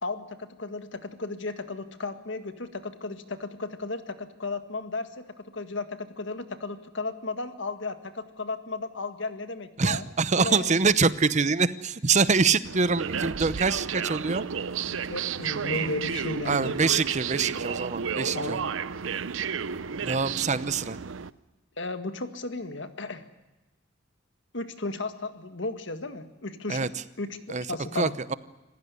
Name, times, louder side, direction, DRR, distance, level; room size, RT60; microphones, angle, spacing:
voice 1, 0.0-10.0 10.4-10.8 14.0-14.3 14.9-16.8 18.3-18.6 21.8-23.3 24.5-26.9 27.2-27.4 27.7-28.1, left 3 dB, 65° left, 9 dB, 1.9 m, -34 dB
voice 2, 9.8-14.4 16.4-18.6 20.0-21.0 26.7-26.9 27.5-27.7 27.9-28.3, right 4 dB, 35° right, 16 dB, 0.8 m, -25 dB
sound 1, 12.6-21.3, right 6 dB, 75° right, 0.7 m, -32 dB
26.5 x 15.5 x 9.7 m, 1.1 s
head